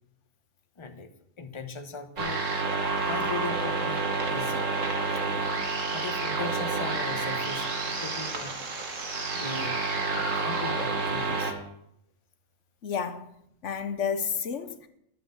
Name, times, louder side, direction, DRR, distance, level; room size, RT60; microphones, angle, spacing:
voice 1, 0.8-2.4 3.0-4.7 5.9-8.6 9.3-9.8 10.1-11.5, left 4 dB, 25° left, 1.1 m, -39 dB
sound 1, 2.2-11.5, right 3 dB, 90° right, 2.2 m, -29 dB
voice 2, 12.8-13.3 13.6-14.9, left 6 dB, 70° left, 1.3 m, -31 dB
12.5 x 8.2 x 7.9 m
omnidirectional pair, 1.3 m